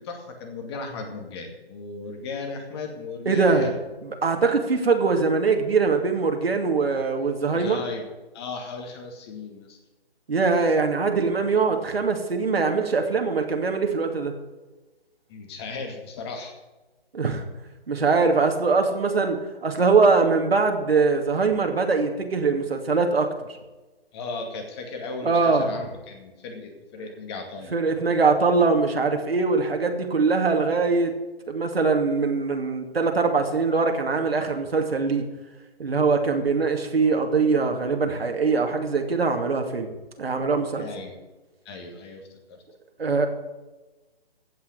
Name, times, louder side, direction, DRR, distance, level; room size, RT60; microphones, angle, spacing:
voice 1, 0.0-3.7 7.5-8.1 8.3-9.8 15.3-16.5 24.1-27.7 40.8-41.2 41.7-42.6, left 3 dB, 25° left, 4 dB, 2.3 m, -35 dB
voice 2, 3.3-3.7 4.2-7.8 10.3-14.3 17.1-17.4 17.9-23.3 25.2-25.7 27.0-27.1 27.7-31.1 31.5-35.2 35.8-39.9 40.2-40.9 43.0-43.3, right 4 dB, 75° right, 4 dB, 2.6 m, -22 dB
15.5 x 5.8 x 9.0 m, 1.1 s
figure-of-eight pair, 150°, 31 cm